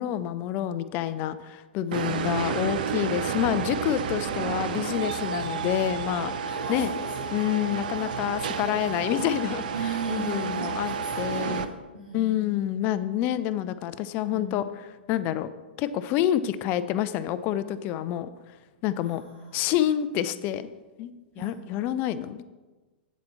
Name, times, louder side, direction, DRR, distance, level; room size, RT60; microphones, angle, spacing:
voice 1, 0.0-6.3 6.7-6.9 7.3-9.6 10.1-11.7 12.1-14.6 15.1-15.5 15.8-18.3 18.8-19.2 19.5-20.7 21.0-22.4, left 11 dB, 35° left, 13 dB, 0.5 m, -28 dB
sound 1, 1.9-11.6, right 7 dB, 55° right, 0.6 m, -31 dB
voice 2, 1.9-2.3 3.2-3.6 5.4-5.7 6.4-9.4 9.7-12.8 14.2-14.7 19.0-19.7 21.3-21.7, right 2 dB, 90° right, -8 dB, 2.4 m, -39 dB
8.4 x 7.7 x 4.2 m, 1.2 s
figure-of-eight pair, 105°, 6 cm